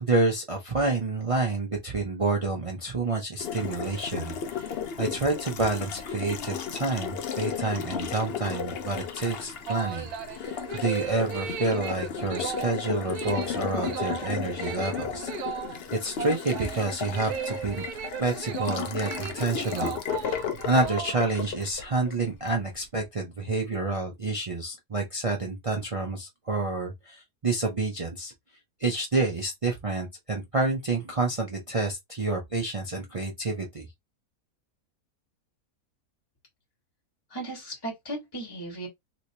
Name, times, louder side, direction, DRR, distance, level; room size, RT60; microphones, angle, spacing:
voice 1, 0.0-15.3 15.9-17.8 18.2-28.3 28.8-33.9, right 3 dB, 55° right, 0.3 m, -29 dB
Water tap faucet, 3.4-22.6, left 7 dB, 60° left, 0.7 m, -34 dB
sound 1, 9.4-21.5, right 8 dB, 85° right, 1.2 m, -37 dB
voice 2, 37.3-38.9, right 1 dB, 15° left, 1.6 m, -36 dB
3.0 x 3.0 x 2.7 m
omnidirectional pair, 1.6 m